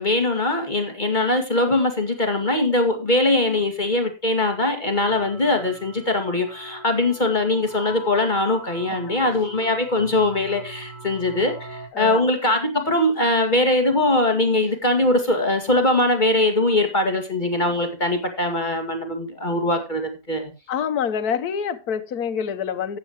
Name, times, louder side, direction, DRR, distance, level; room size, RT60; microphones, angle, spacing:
voice 1, 0.0-20.5, left 2 dB, 30° left, 2.1 m, -21 dB
sound 1, 4.9-11.9, equal, 45° left, 3.5 m, -40 dB
voice 2, 11.9-12.3 20.7-23.0, left 7 dB, 80° left, 1.5 m, -26 dB
13.5 x 9.3 x 3.0 m
omnidirectional pair, 1.6 m